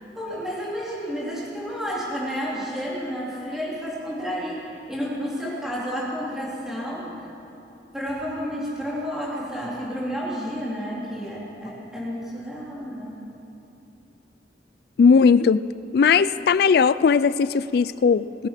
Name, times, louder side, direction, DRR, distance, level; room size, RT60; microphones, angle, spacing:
voice 1, 0.1-7.1 7.9-13.2, equal, 5° right, -6 dB, 3.0 m, -31 dB
voice 2, 15.0-15.6 15.9-18.5, left 5 dB, 55° left, 16 dB, 0.3 m, -18 dB
20.0 x 9.7 x 5.8 m, 2.9 s
head